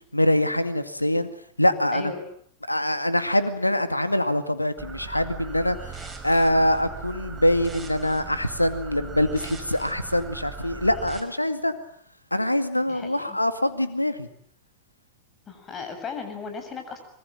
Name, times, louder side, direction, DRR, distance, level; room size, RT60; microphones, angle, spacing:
voice 1, 0.1-1.3 1.6-2.1 2.7-5.8 6.0-11.7 12.3-14.3, left 1 dB, 85° left, 11 dB, 2.1 m, -24 dB
voice 2, 1.9-2.2 12.9-13.4 15.5-17.0, left 5 dB, 25° left, 7 dB, 7.5 m, -36 dB
sound 1, 4.8-11.2, right 5 dB, 15° right, 5.5 m, -39 dB
25.5 x 23.5 x 9.0 m, 0.63 s
figure-of-eight pair, 90°, 0 cm